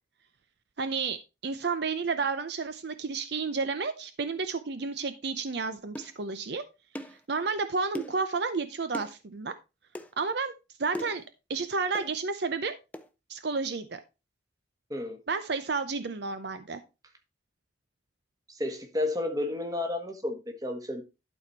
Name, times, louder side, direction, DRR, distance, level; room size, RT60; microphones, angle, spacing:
voice 1, 0.8-6.6 7.3-9.5 10.2-10.5 10.8-11.2 11.5-12.8 13.3-14.0 15.3-16.8, right 4 dB, 60° right, 0.6 m, -31 dB
sound 1, 5.9-6.1 6.9-7.2 7.9-8.2 8.9-9.1 9.9-10.1 10.9-11.3 11.9-12.1 12.9-13.1, equal, 10° left, 0.6 m, -38 dB
voice 2, 14.9-15.2 18.5-21.0, left 2 dB, 20° right, 1.5 m, -32 dB
12.0 x 4.2 x 4.5 m
head